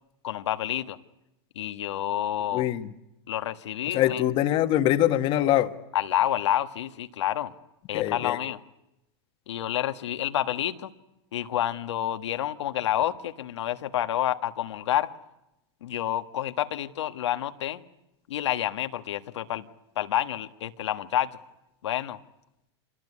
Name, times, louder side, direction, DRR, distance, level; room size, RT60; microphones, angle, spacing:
voice 1, 0.2-1.0 1.5-2.7 3.3-4.2 5.9-7.5 7.9-8.6 9.5-10.9 11.3-15.1 15.8-17.8 18.3-19.7 20.0-21.3 21.8-22.2, left 12 dB, 85° left, 8 dB, 1.5 m, -28 dB
voice 2, 2.5-2.9 3.9-5.7 7.9-8.4, left 13 dB, 40° left, 9 dB, 1.5 m, -23 dB
26.5 x 21.0 x 9.8 m, 0.90 s
supercardioid pair, 140°, 14 cm